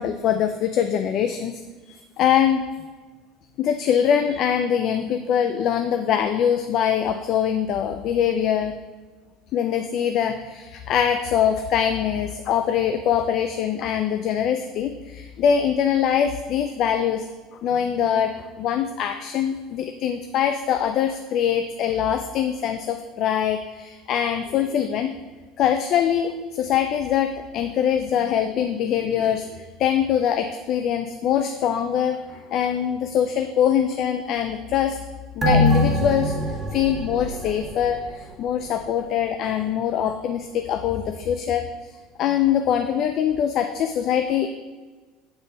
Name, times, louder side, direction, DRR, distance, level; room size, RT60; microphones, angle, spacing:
voice 1, 0.0-1.5 1.9-2.6 3.6-8.7 9.5-17.3 17.6-25.1 25.6-35.0 35.4-36.4 36.7-41.7 42.2-44.5, left 9 dB, 55° left, 7 dB, 0.4 m, -23 dB
sound 1, 35.4-38.3 38.7-38.8, left 1 dB, 20° right, 1.5 m, -23 dB
6.9 x 4.0 x 5.1 m, 1.3 s
hypercardioid pair, 75°, 0 cm